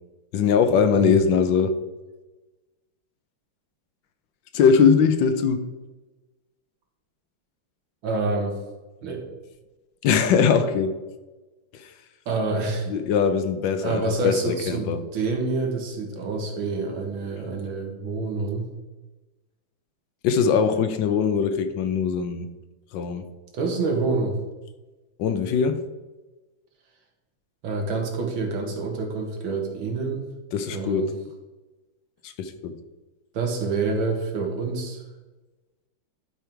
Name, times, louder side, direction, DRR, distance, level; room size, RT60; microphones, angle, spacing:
voice 1, 0.3-1.8 4.5-5.6 10.0-11.0 12.9-15.0 20.2-22.5 22.9-23.2 25.2-25.8 30.5-31.1 32.2-32.7, left 6 dB, 70° left, 9 dB, 1.4 m, -21 dB
voice 2, 8.0-8.5 9.0-9.2 12.3-12.9 13.8-18.7 23.5-24.3 27.6-30.3 30.7-31.1 33.3-35.0, right 3 dB, 85° right, 2 dB, 2.3 m, -27 dB
11.5 x 5.4 x 4.5 m, 1.2 s
omnidirectional pair, 2.2 m